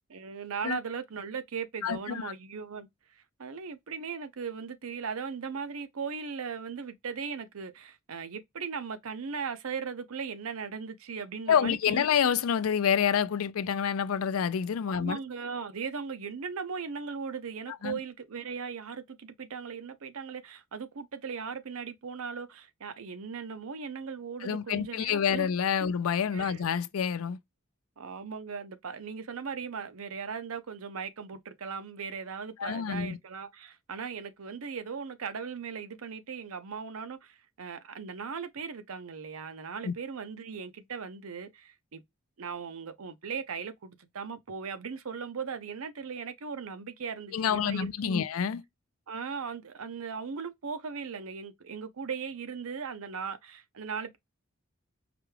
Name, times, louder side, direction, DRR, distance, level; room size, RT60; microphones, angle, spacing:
voice 1, 0.1-2.9 3.1-12.1 14.9-25.5 26.3-26.6 28.0-42.0 42.4-48.2 49.1-54.2, right 5 dB, 85° right, 0.6 m, -38 dB
voice 2, 1.8-2.3 11.5-15.2 17.8-18.0 24.4-27.4 32.6-33.2 39.8-39.9 47.3-48.6, left 7 dB, 80° left, 0.4 m, -28 dB
4.9 x 2.3 x 3.2 m
head